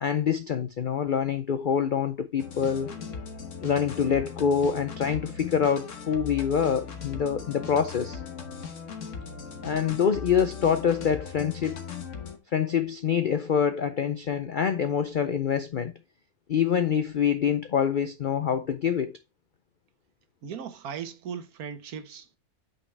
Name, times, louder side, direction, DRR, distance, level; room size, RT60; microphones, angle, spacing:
voice 1, 0.0-2.9 3.6-8.2 9.6-11.8 12.5-15.9 16.5-19.2, left 7 dB, 80° left, 0.4 m, -26 dB
sound 1, 2.4-12.4, left 6 dB, 55° left, 1.5 m, -39 dB
voice 2, 20.4-22.4, right 7 dB, 75° right, 1.5 m, -38 dB
8.6 x 5.6 x 3.3 m
omnidirectional pair, 1.6 m